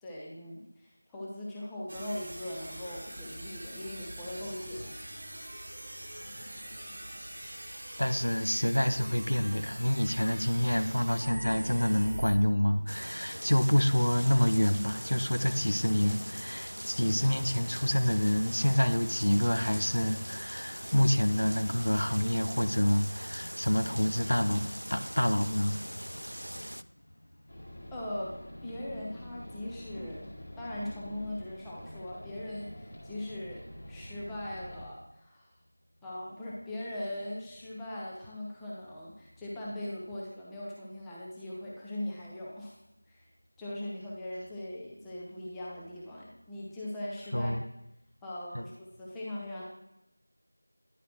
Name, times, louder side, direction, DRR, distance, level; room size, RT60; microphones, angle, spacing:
voice 1, 0.0-4.9 27.9-28.3 28.6-30.3 30.6-35.5 36.0-42.8 43.1-43.3 43.6-47.5 48.2-49.7, left 1 dB, 5° left, -7 dB, 0.6 m, -40 dB
sound 1, 1.9-12.4, right 1 dB, 35° right, 1.1 m, -43 dB
voice 2, 6.3-6.8 8.0-25.8 47.3-47.6 48.5-48.7, equal, 70° left, 9 dB, 0.6 m, -27 dB
sound 2, 12.9-26.8, equal, 90° right, 0.3 m, -41 dB
sound 3, 27.5-34.9, equal, 30° left, 1.7 m, -46 dB
10.0 x 4.9 x 2.9 m, 0.88 s
figure-of-eight pair, 175°, 0 cm